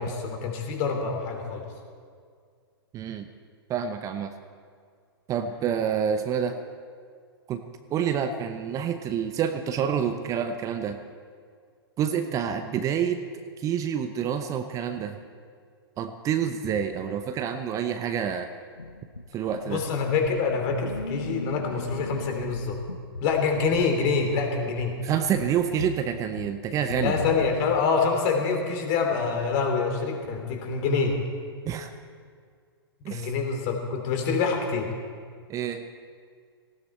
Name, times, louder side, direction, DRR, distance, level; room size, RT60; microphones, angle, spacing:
voice 1, 0.0-1.6 19.7-22.8 23.2-24.9 27.0-31.2 33.1-34.9, left 5 dB, 40° left, 3 dB, 3.0 m, -26 dB
voice 2, 2.9-3.3 3.7-4.3 5.3-6.6 7.5-7.6 7.9-11.0 12.0-13.2 13.6-15.2 16.0-18.5 19.3-19.8 25.0-27.2 31.7-31.9 33.0-33.3 35.5-35.8, right 8 dB, 25° right, 8 dB, 0.8 m, -28 dB
sound 1, 18.8-27.9, left 2 dB, 90° left, 0.7 m, -38 dB
18.5 x 16.0 x 4.4 m, 2.1 s
figure-of-eight pair, 105°, 13 cm